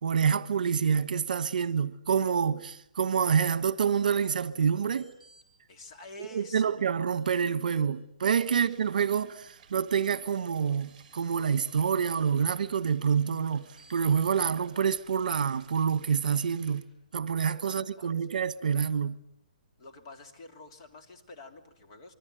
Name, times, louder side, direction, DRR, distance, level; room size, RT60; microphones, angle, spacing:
voice 1, 0.0-5.1 6.3-13.6 13.9-16.8 17.1-19.2, right 7 dB, 65° right, 1.3 m, -27 dB
sound 1, 4.8-5.4 7.1-7.2 7.7-7.8 8.3-8.7 10.4-10.5 10.9-11.8 13.8-14.3, right 3 dB, 5° left, 7.3 m, -59 dB
voice 2, 5.7-6.8 8.5-8.6 17.6-18.1 19.8-22.1, left 2 dB, 35° left, 3.0 m, -48 dB
sound 2, 8.5-16.8, right 7 dB, 30° right, 5.1 m, -58 dB
25.5 x 24.0 x 9.1 m
hypercardioid pair, 170°, 5 cm